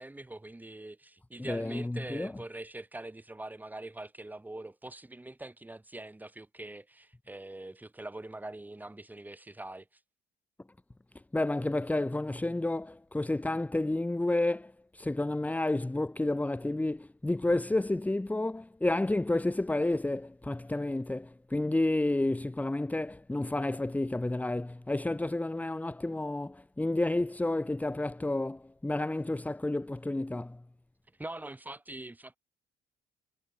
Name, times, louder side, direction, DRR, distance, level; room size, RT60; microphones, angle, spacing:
voice 1, 0.0-9.9 31.2-32.4, right 2 dB, 10° right, 4.1 m, -43 dB
voice 2, 1.4-2.3 11.3-30.6, left 2 dB, 10° left, 1.9 m, -30 dB
cardioid pair, 110°, 17 cm